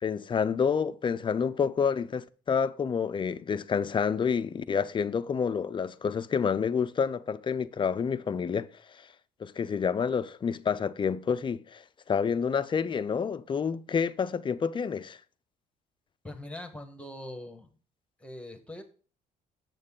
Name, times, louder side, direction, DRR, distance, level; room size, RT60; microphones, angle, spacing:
voice 1, 0.0-9.1 9.4-15.2, left 6 dB, 30° left, 0.5 m, -29 dB
voice 2, 16.2-17.7 18.2-18.8, left 1 dB, 5° left, 1.3 m, -42 dB
8.1 x 6.6 x 3.7 m
cardioid pair, 110°, 17 cm